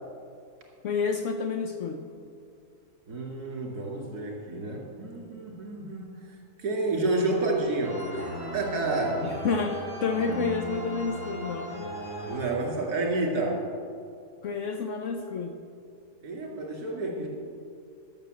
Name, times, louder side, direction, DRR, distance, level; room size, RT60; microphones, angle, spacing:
voice 1, 0.8-2.0 9.2-11.7 14.4-15.6, left 5 dB, 60° left, 5 dB, 0.9 m, -29 dB
voice 2, 3.1-6.2 6.6-9.2 12.2-13.6 16.2-17.3, right 2 dB, 75° right, -1 dB, 2.8 m, -30 dB
sound 1, 7.8-13.1, equal, 15° right, 1.5 m, -37 dB
12.0 x 6.7 x 7.6 m, 2.3 s
omnidirectional pair, 1.6 m